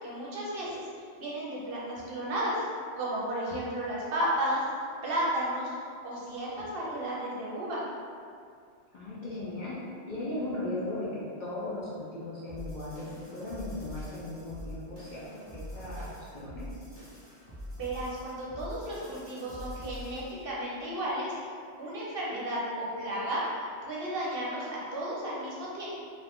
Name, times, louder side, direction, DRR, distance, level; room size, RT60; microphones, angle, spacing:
voice 1, 0.0-2.6 3.0-4.6 5.0-5.7 6.0-7.8 17.7-21.4 21.8-25.9, right 1 dB, 60° right, -5 dB, 0.8 m, -33 dB
voice 2, 8.9-9.8 10.0-15.4 15.7-16.7, left 2 dB, 50° left, -8 dB, 0.6 m, -37 dB
sound 1, 12.5-20.4, equal, 15° left, 0.9 m, -44 dB
2.6 x 2.4 x 3.4 m, 2.3 s
omnidirectional pair, 1.2 m